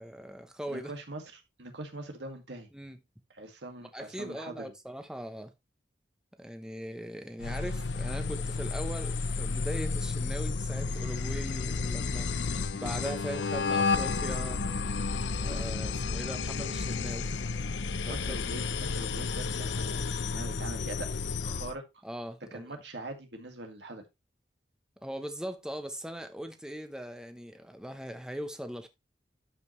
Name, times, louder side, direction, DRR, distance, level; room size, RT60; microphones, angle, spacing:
voice 1, 0.0-0.9 2.7-3.0 3.9-5.5 6.4-12.3 12.7-14.6 15.4-17.3 18.0-18.4 22.0-22.8 25.0-28.9, equal, 5° right, 0.8 m, -40 dB
voice 2, 0.7-2.7 3.3-4.5 18.0-21.1 21.4-21.8 22.5-24.0, right 2 dB, 70° right, 2.0 m, -42 dB
sound 1, 7.4-21.7, left 4 dB, 85° left, 0.6 m, -32 dB
12.5 x 5.3 x 3.1 m
head